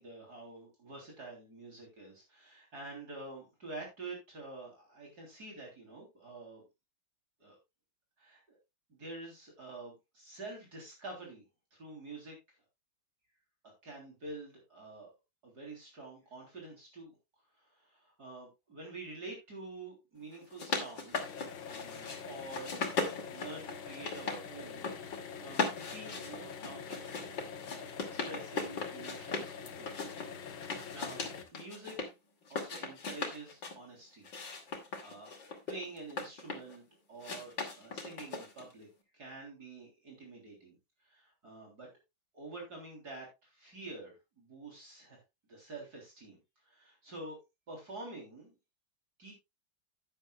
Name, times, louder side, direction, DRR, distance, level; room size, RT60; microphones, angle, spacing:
voice 1, 0.0-6.6 7.4-7.6 8.2-8.6 8.9-11.4 11.7-12.4 13.8-15.1 15.4-17.2 17.5-21.4 21.7-29.5 29.8-30.1 30.7-31.2 31.5-32.0 32.5-34.3 35.0-35.3 35.7-36.8 37.1-38.9 39.1-40.8 41.0-41.9 42.3-45.2 45.5-46.4 46.6-47.4 47.7-48.5 49.2-49.3, right 2 dB, 50° right, -1 dB, 4.1 m, -48 dB
sound 1, 20.3-22.2 22.5-24.4 24.7-25.2 25.5-29.5 29.9-32.1 32.5-33.8 34.2-36.8 37.2-38.7, left 4 dB, 65° left, 3.1 m, -38 dB
sound 2, 21.1-31.4, left 6 dB, 85° left, 2.0 m, -45 dB
11.5 x 10.5 x 2.4 m, 0.23 s
omnidirectional pair, 2.2 m